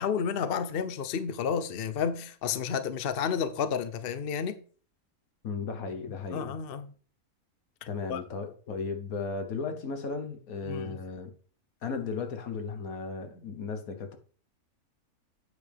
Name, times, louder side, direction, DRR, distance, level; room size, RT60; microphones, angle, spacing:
voice 1, 0.0-4.6 6.3-6.9 8.1-8.2 10.6-11.0, left 7 dB, 55° left, 0.7 m, -31 dB
voice 2, 5.4-6.5 7.9-11.3 11.8-14.2, left 4 dB, 70° left, 1.5 m, -35 dB
8.2 x 6.9 x 3.4 m
omnidirectional pair, 1.6 m